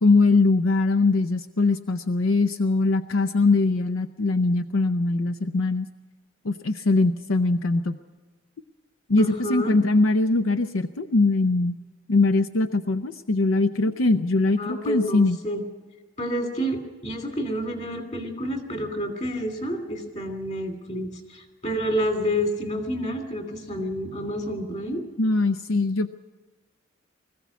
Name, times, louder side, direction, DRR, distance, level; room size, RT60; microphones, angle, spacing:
voice 1, 0.0-5.9 6.4-8.0 9.1-11.8 12.1-15.4 25.2-26.1, left 3 dB, 85° left, 10 dB, 0.6 m, -21 dB
voice 2, 9.2-9.8 14.5-15.6 16.2-25.0, equal, 35° left, 5 dB, 2.7 m, -29 dB
20.5 x 15.0 x 8.3 m, 1.3 s
head